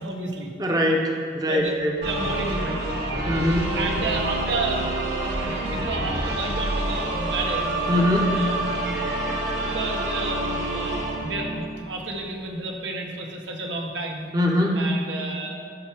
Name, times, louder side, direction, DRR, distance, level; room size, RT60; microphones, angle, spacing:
voice 1, 0.0-0.5 1.4-2.8 3.8-4.9 5.2-7.7 8.3-8.5 9.0-9.3 9.6-14.3 14.7-15.7, right 2 dB, 90° right, 1 dB, 1.0 m, -31 dB
voice 2, 0.6-2.0 2.3-2.4 3.3-3.8 7.9-8.4 14.3-14.9, left 1 dB, 20° right, 0 dB, 0.6 m, -22 dB
sound 1, 2.0-12.0, right 2 dB, 65° right, 1.2 m, -27 dB
13.5 x 4.5 x 3.4 m, 2.3 s
head